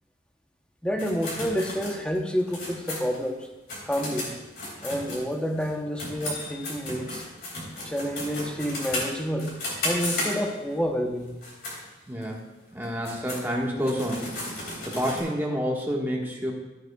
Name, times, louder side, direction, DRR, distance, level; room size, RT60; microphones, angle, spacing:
voice 1, 0.8-3.5 3.9-4.3 4.8-7.2 7.8-9.6 9.8-11.3, equal, 5° left, 3 dB, 0.8 m, -29 dB
sound 1, 1.0-5.7 6.0-10.7 11.3-11.8 12.2-12.3 12.8-15.2, left 1 dB, 60° left, 3.5 m, -34 dB
voice 2, 12.1-12.4 12.7-14.3 14.9-16.5, equal, 10° right, -2 dB, 1.4 m, -28 dB
13.5 x 8.9 x 2.3 m, 1.1 s
head